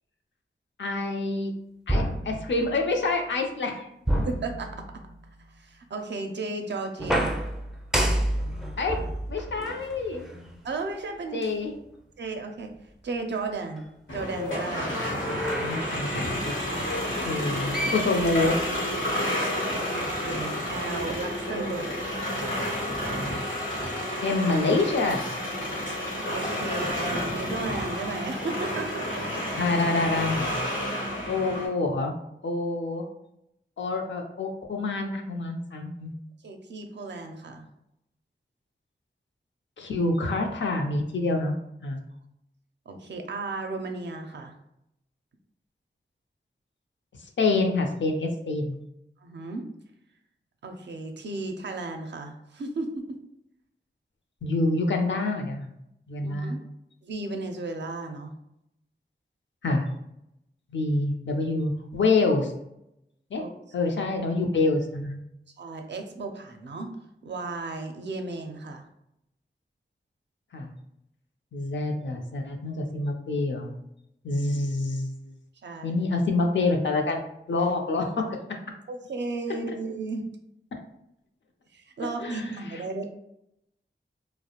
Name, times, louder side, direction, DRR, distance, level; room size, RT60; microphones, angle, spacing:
voice 1, 0.8-1.5 1.9-3.9 8.8-9.0 9.3-10.3 11.3-11.7 15.7-16.6 17.2-18.6 24.2-25.3 29.6-30.5 31.3-32.1 32.4-33.1 33.8-36.1 39.8-41.5 41.8-42.0 47.4-48.8 54.4-55.7 56.1-56.5 59.6-59.9 60.7-62.5 63.3-63.4 63.7-65.2 70.5-70.7 71.5-73.7 74.2-75.1 75.8-78.4 82.2-82.5, left 3 dB, 70° left, 2 dB, 0.5 m, -26 dB
sound 1, 1.9-3.0 4.1-5.2 7.0-10.6 11.4-11.5 14.8-16.1 17.4-17.5 17.7-19.0, right 1 dB, 5° right, 0.4 m, -30 dB
voice 2, 4.2-4.7 5.6-7.4 10.6-11.4 12.2-12.7 13.0-14.9 15.3-15.7 19.9-21.9 26.3-29.2 30.8-31.0 36.4-37.6 42.9-44.5 49.2-49.7 50.6-52.9 56.2-56.6 57.0-58.3 63.4-63.5 65.6-66.9 67.2-68.8 75.6-76.0 78.9-80.2 81.7-83.0, right 3 dB, 65° right, 5 dB, 0.4 m, -34 dB
sound 2, 14.1-31.7, equal, 90° left, 0.9 m, -30 dB
2.3 x 2.0 x 2.8 m, 0.81 s
cardioid pair, 45°, 20 cm